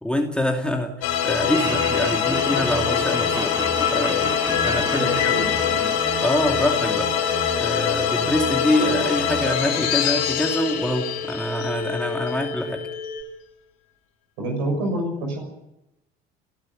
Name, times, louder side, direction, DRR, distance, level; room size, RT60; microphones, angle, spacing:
voice 1, 0.0-3.6 3.9-5.4 6.2-7.1 7.6-12.8, equal, 5° left, 2 dB, 2.7 m, -25 dB
sound 1, 1.0-12.4, left 8 dB, 60° left, 4.3 m, -24 dB
Laughter, 1.5-7.7, right 1 dB, 10° right, 3.2 m, -33 dB
sound 2, 2.3-13.2, left 5 dB, 30° left, 4.9 m, -32 dB
voice 2, 4.8-5.8 14.4-15.5, right 1 dB, 65° right, 2 dB, 6.7 m, -28 dB
30.0 x 11.0 x 9.6 m, 0.89 s
figure-of-eight pair, 60°, 30 cm